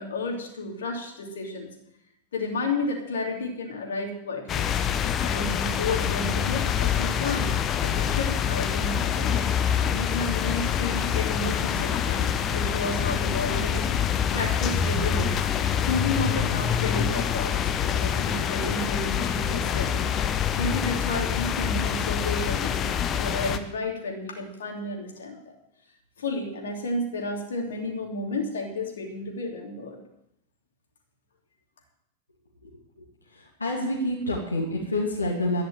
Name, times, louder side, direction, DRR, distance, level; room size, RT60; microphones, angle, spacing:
voice 1, 0.0-1.7 2.3-4.7 5.2-9.3 9.6-13.9 14.3-15.4 15.8-17.6 17.8-20.1 20.6-25.4 26.2-30.0, left 2 dB, 65° left, 1 dB, 3.0 m, -32 dB
sound 1, 4.5-23.6, left 8 dB, 30° left, 1.1 m, -26 dB
voice 2, 33.6-35.6, left 1 dB, 80° left, -3 dB, 2.6 m, -27 dB
12.0 x 10.5 x 7.7 m, 0.81 s
figure-of-eight pair, 90°, 0 cm